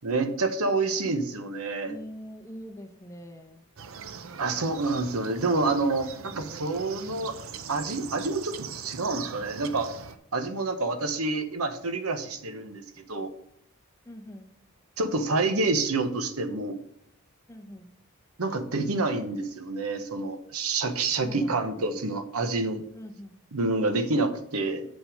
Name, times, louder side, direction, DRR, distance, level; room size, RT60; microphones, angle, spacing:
voice 1, 0.0-1.9 4.4-7.3 7.7-9.9 10.3-12.8 13.1-13.3 15.0-16.8 18.4-22.8 23.5-24.9, right 3 dB, 85° right, 9 dB, 1.0 m, -28 dB
voice 2, 1.9-3.7 9.1-9.5 14.0-14.5 17.5-17.9 21.2-22.0 22.9-23.3, equal, 15° left, 4 dB, 0.8 m, -43 dB
sound 1, 3.8-10.2, right 6 dB, 65° right, 0.6 m, -41 dB
7.6 x 5.9 x 4.9 m, 0.71 s
head